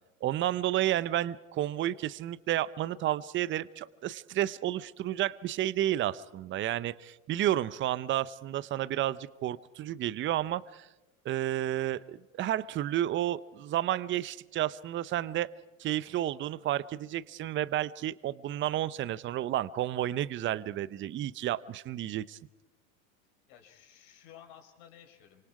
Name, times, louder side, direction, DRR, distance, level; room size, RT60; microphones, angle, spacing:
voice 1, 0.2-10.9 11.2-15.5 15.8-22.4, right 13 dB, 30° right, 17 dB, 0.7 m, -31 dB
voice 2, 23.5-25.5, left 9 dB, 60° left, 5 dB, 4.5 m, -54 dB
28.5 x 25.5 x 4.8 m, 1.0 s
hypercardioid pair, 105°, 40 cm